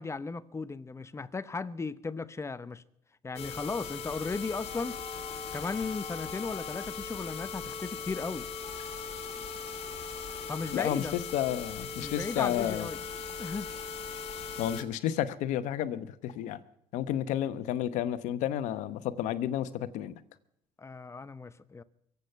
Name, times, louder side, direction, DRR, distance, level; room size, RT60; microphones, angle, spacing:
voice 1, 0.0-2.8 3.2-5.0 5.5-8.5 10.5-11.2 12.0-13.0 13.4-13.7 20.8-21.8, left 4 dB, 20° left, 0.8 m, -36 dB
sound 1, 3.4-14.8 15.3-15.4 15.8-15.9 16.3-16.4, left 5 dB, 55° left, 2.3 m, -39 dB
voice 2, 10.7-12.9 14.6-16.6 16.9-20.2, left 11 dB, 75° left, 1.0 m, -31 dB
23.5 x 8.3 x 5.7 m
supercardioid pair, 85°, 13 cm